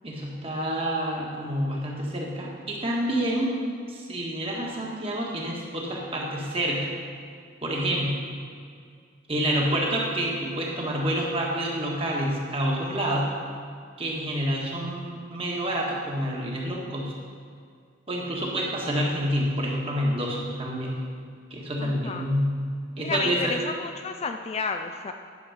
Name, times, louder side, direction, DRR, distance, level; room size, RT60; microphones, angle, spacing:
voice 1, 0.0-3.5 3.9-6.9 7.6-8.2 9.3-13.3 14.0-17.1 18.1-21.0 21.5-22.4 23.0-23.6, equal, 30° right, -3 dB, 1.6 m, -28 dB
voice 2, 21.8-22.2 23.0-25.1, left 4 dB, 30° left, 6 dB, 0.3 m, -32 dB
11.0 x 7.2 x 5.0 m, 2.2 s
head